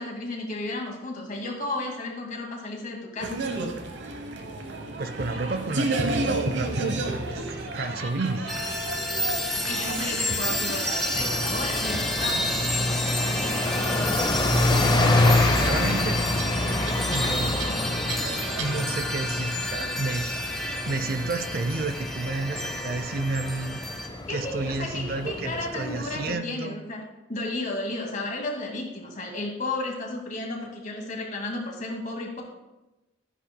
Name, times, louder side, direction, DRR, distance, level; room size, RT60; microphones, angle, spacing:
voice 1, 0.0-3.4 9.6-12.5 24.3-27.0 27.3-32.4, left 2 dB, 45° left, 0 dB, 2.0 m, -33 dB
sound 1, 3.2-18.8, right 2 dB, 65° right, 1.0 m, -33 dB
voice 2, 5.0-8.5 14.5-16.2 17.1-17.6 18.6-23.8 24.3-26.7, right 3 dB, 50° right, 11 dB, 0.5 m, -31 dB
sound 2, 8.5-24.1, left 1 dB, ahead, 0.9 m, -30 dB
sound 3, 11.1-26.3, left 2 dB, 20° left, 0.6 m, -27 dB
13.0 x 9.9 x 2.2 m, 1.0 s
head